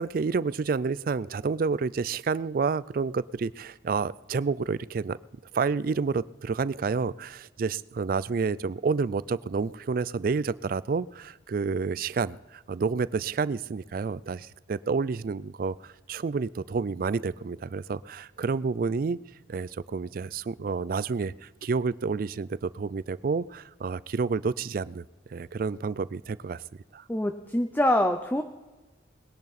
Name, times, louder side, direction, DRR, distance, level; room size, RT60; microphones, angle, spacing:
voice 1, 0.0-5.2 5.5-19.2 19.5-25.0 25.3-26.6 26.9-27.0, right 4 dB, 50° right, 19 dB, 0.3 m, -29 dB
voice 2, 27.1-28.4, left 1 dB, 10° left, 7 dB, 0.6 m, -25 dB
20.5 x 10.5 x 4.2 m, 1.2 s
head